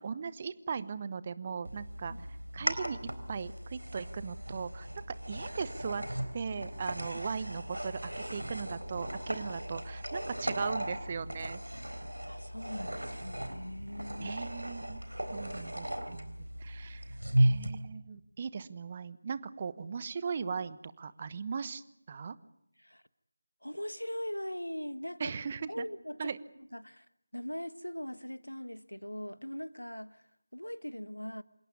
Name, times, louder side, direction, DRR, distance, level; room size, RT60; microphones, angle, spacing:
voice 1, 0.0-2.1 2.5-6.0 6.3-11.6 14.2-15.0 15.3-22.4 25.2-25.9 26.2-26.4, right 5 dB, 25° right, 1.0 m, -38 dB
sound 1, 1.7-17.7, right 1 dB, 80° right, 3.9 m, -36 dB
voice 2, 12.3-14.4 22.8-23.0 23.6-25.3 25.7-26.3 26.7-27.0 27.3-30.2 30.5-31.4, equal, 85° left, 1.4 m, -40 dB
27.5 x 17.5 x 9.6 m
figure-of-eight pair, 165°, 0 cm